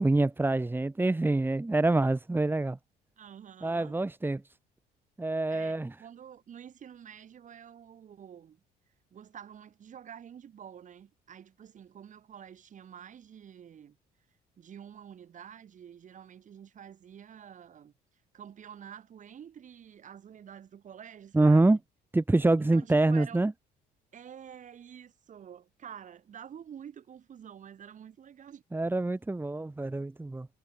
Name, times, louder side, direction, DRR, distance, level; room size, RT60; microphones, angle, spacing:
voice 1, 0.0-2.8 3.6-4.4 5.2-5.9 21.3-21.8 22.1-23.5 28.7-30.5, right 2 dB, 10° right, 3.2 m, -26 dB
voice 2, 3.2-4.0 5.5-8.6 9.1-14.0 14.6-17.9 18.3-21.8 22.6-23.4 24.1-28.6, right 8 dB, 50° right, 7.6 m, -48 dB
cardioid pair, 110°, 17 cm